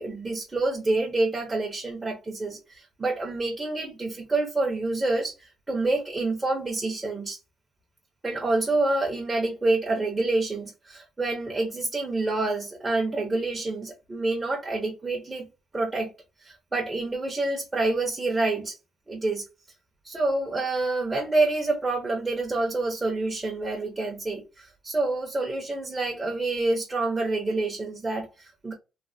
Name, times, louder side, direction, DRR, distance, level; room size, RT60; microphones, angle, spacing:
voice 1, 0.0-7.4 8.2-15.5 15.7-16.1 16.4-18.8 19.1-19.4 20.0-28.7, right 2 dB, 15° right, 0.6 m, -27 dB
3.1 x 2.1 x 2.5 m
cardioid pair, 165°, 0 cm